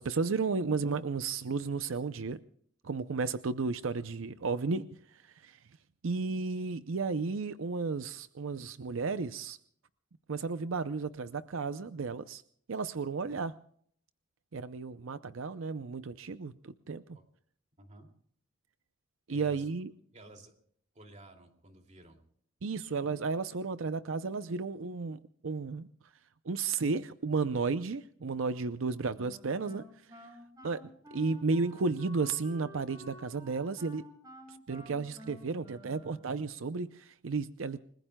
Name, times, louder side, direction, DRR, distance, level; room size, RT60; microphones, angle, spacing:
voice 1, 0.0-2.4 2.8-4.8 5.1-5.6 6.0-9.6 10.3-12.4 12.7-13.5 14.5-17.2 19.3-19.9 22.6-25.9 26.4-30.3 30.6-30.8 31.1-34.0 34.5-37.8, right 4 dB, 85° right, 13 dB, 0.6 m, -33 dB
voice 2, 17.8-18.1 19.3-19.7 20.1-20.5 20.9-22.2, right 1 dB, 35° right, 3 dB, 2.6 m, -53 dB
Wind instrument woodwind instrument, 29.2-36.6, equal, 20° right, 5.1 m, -52 dB
29.5 x 20.0 x 2.3 m, 0.62 s
head